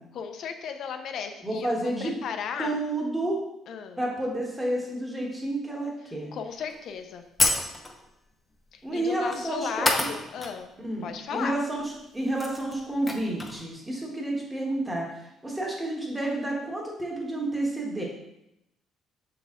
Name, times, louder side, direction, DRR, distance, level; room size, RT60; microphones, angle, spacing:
voice 1, 0.1-2.8 3.7-4.0 6.3-7.2 8.7-10.7 11.0-11.5, left 7 dB, 55° left, 7 dB, 0.6 m, -35 dB
voice 2, 1.4-2.1 2.6-3.4 4.0-6.3 8.8-10.1 10.8-18.0, right 1 dB, 10° right, -1 dB, 1.3 m, -30 dB
sound 1, 6.7-6.8 7.4-8.1 9.2-9.4 9.8-10.6 10.8-10.9 11.9-12.0 12.2-13.6, left 2 dB, 15° left, 0.7 m, -28 dB
6.7 x 4.1 x 3.7 m, 0.84 s
cardioid pair, 150°, 0 cm